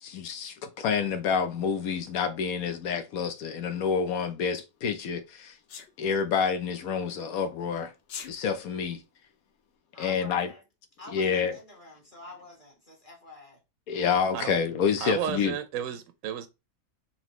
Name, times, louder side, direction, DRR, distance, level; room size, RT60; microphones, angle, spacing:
voice 1, 0.0-5.6 6.0-7.9 8.3-9.0 10.0-10.5 11.1-11.5 13.9-15.6, left 6 dB, 75° left, 1.2 m, -28 dB
Sneeze, 5.7-5.9 8.0-8.3, left 7 dB, 60° left, 0.7 m, -39 dB
voice 2, 9.9-10.6 11.0-13.6, left 2 dB, 25° left, 1.5 m, -48 dB
voice 3, 15.0-16.5, right 9 dB, 70° right, 0.9 m, -32 dB
3.9 x 3.0 x 3.1 m
omnidirectional pair, 1.5 m